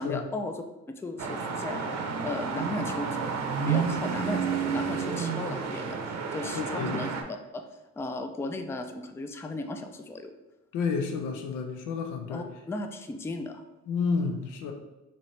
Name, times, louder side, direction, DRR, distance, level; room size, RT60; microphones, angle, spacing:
voice 1, 0.0-1.8 2.2-3.3 3.6-7.6 8.0-10.3 12.3-13.6, left 2 dB, 10° left, 6 dB, 0.3 m, -36 dB
sound 1, 1.2-7.2, right 6 dB, 60° right, 0.6 m, -30 dB
voice 2, 6.5-7.0 10.7-12.5 13.9-14.7, left 5 dB, 85° left, 4 dB, 0.7 m, -30 dB
4.3 x 2.9 x 3.2 m, 1.0 s
cardioid pair, 90°, 30 cm